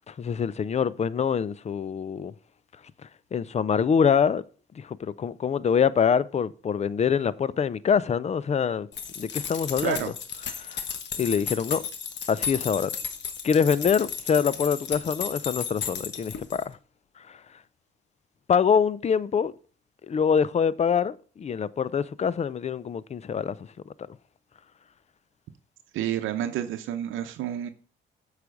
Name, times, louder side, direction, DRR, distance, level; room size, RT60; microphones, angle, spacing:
voice 1, 0.1-2.3 3.3-4.4 4.8-8.9 9.2-10.1 10.6-10.8 11.2-11.8 12.3-12.9 13.4-16.8 17.3-17.4 18.5-19.5 20.1-23.6, left 7 dB, 35° left, 0.5 m, -25 dB
sound 1, 8.9-16.7, left 7 dB, 65° left, 1.2 m, -34 dB
voice 2, 25.9-27.7, right 11 dB, 85° right, 0.8 m, -29 dB
8.3 x 4.9 x 5.2 m
cardioid pair, 90°, 20 cm